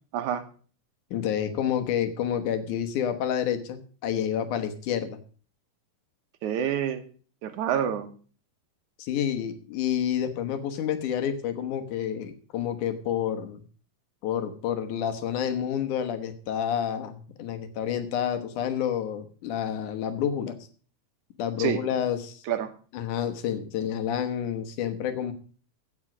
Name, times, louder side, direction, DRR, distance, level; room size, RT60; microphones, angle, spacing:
voice 1, 1.1-5.2 9.0-13.6 14.2-20.6 21.4-22.4 22.9-25.3, left 9 dB, 75° left, 8 dB, 2.6 m, -29 dB
voice 2, 6.4-7.0 7.4-8.1 21.6-21.8 22.5-22.7, right 9 dB, 75° right, 10 dB, 2.4 m, -27 dB
15.5 x 6.3 x 6.1 m, 0.42 s
omnidirectional pair, 3.7 m